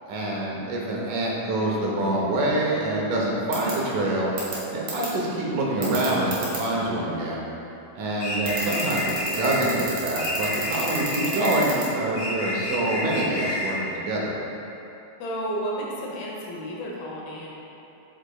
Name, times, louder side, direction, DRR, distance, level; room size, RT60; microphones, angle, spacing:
voice 1, 0.1-4.3 4.7-7.4 8.0-14.3, right 1 dB, 70° right, -3 dB, 2.1 m, -26 dB
sound 1, 3.5-3.7 4.4-4.5 4.9-5.1 5.8-6.6 8.4-11.9, right 5 dB, 55° right, 1.8 m, -31 dB
sound 2, 8.2-9.7 10.2-11.7 12.1-13.8, left 1 dB, 60° left, 2.2 m, -29 dB
voice 2, 8.6-8.9 15.2-17.5, right 1 dB, 80° left, -3 dB, 2.7 m, -32 dB
7.7 x 6.6 x 2.3 m, 3.0 s
omnidirectional pair, 4.2 m